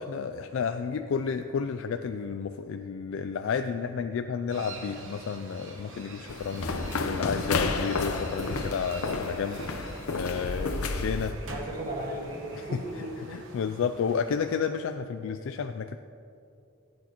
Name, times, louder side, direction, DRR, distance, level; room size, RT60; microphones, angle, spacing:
voice 1, 0.0-11.4 12.7-12.8 13.2-16.0, left 6 dB, 65° left, 8 dB, 0.3 m, -31 dB
sound 1, 4.5-14.7, right 2 dB, 60° right, 1.3 m, -45 dB
sound 2, 6.3-11.3, left 3 dB, 90° left, 0.7 m, -31 dB
sound 3, 6.5-9.5, left 1 dB, ahead, 1.7 m, -43 dB
voice 2, 10.5-10.9 11.4-13.4, right 1 dB, 40° right, -2 dB, 1.7 m, -37 dB
16.0 x 8.5 x 3.0 m, 2.6 s
head